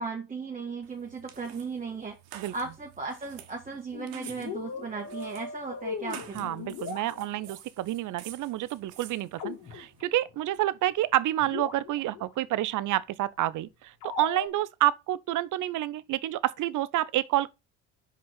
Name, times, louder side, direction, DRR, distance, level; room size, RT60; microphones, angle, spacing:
voice 1, 0.0-2.2 2.5-6.5, right 4 dB, 20° right, 1.7 m, -36 dB
sound 1, 0.8-10.0, right 11 dB, 70° right, 1.3 m, -50 dB
sound 2, 3.9-7.6 9.4-10.3 10.6-10.7 11.1-11.2 11.4-12.3 14.0-14.5, left 5 dB, 75° left, 3.2 m, -39 dB
voice 2, 6.3-17.5, right 14 dB, 55° right, 0.7 m, -29 dB
5.4 x 5.2 x 5.8 m
supercardioid pair, 75°, 37 cm